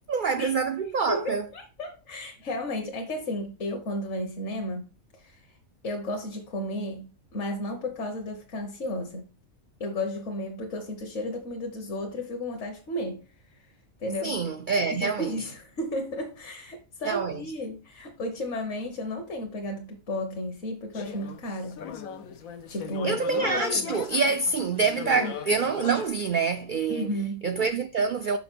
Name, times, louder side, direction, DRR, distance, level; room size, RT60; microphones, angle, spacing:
voice 1, 0.1-1.5 14.2-15.4 17.1-17.4 23.0-27.1 27.4-28.4, right 4 dB, 75° right, 0.4 m, -26 dB
voice 2, 1.1-4.9 5.2-5.5 5.8-9.3 9.8-13.2 14.0-14.4 14.9-21.8 22.7-23.2 25.0-25.3 26.9-27.5, left 1 dB, 60° left, 1.4 m, -33 dB
sound 1, 20.9-26.1, left 7 dB, 90° left, 1.3 m, -37 dB
5.9 x 5.6 x 4.4 m
omnidirectional pair, 1.4 m